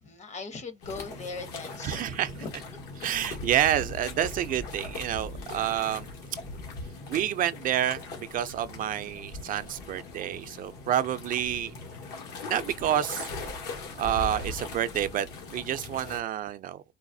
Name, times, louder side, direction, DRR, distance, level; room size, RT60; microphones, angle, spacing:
voice 1, 0.0-2.5 5.4-5.5, left 4 dB, 40° left, 0.9 m, -40 dB
sound 1, 0.8-16.2, left 3 dB, 75° left, 1.3 m, -40 dB
voice 2, 1.8-2.3 3.0-6.1 7.1-11.7 12.5-13.3 14.0-15.3 15.5-16.8, right 11 dB, 55° right, 0.4 m, -28 dB
3.9 x 2.0 x 2.6 m
cardioid pair, 110°, 17 cm